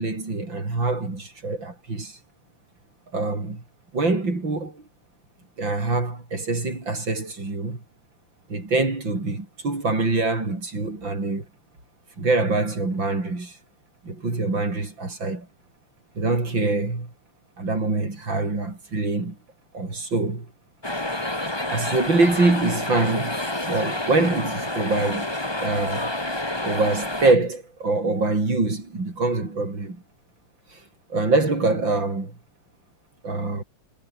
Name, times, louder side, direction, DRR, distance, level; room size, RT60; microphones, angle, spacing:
voice 1, 0.0-2.2 3.1-3.6 3.9-4.8 5.6-7.8 8.5-11.5 12.2-13.6 14.0-15.5 16.2-17.1 17.6-19.4 19.7-20.5 21.7-23.4 23.7-25.3 25.6-26.1 26.6-30.0 30.7-30.8 31.1-32.3 33.2-33.6, right 3 dB, 35° right, 6.4 m, -24 dB
sound 1, 20.8-27.3, left 1 dB, 10° left, 2.4 m, -28 dB
omnidirectional pair, 3.6 m